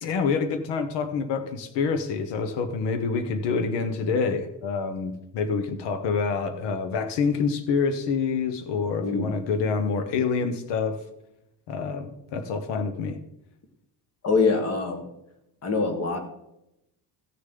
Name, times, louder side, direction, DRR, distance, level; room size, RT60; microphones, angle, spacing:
voice 1, 0.0-11.0 11.7-13.2, left 5 dB, 80° left, 8 dB, 1.1 m, -27 dB
voice 2, 9.0-9.3 14.2-15.0 15.6-16.2, left 4 dB, 35° left, 6 dB, 1.7 m, -24 dB
15.5 x 6.6 x 3.9 m, 0.87 s
cardioid pair, 165°, 41 cm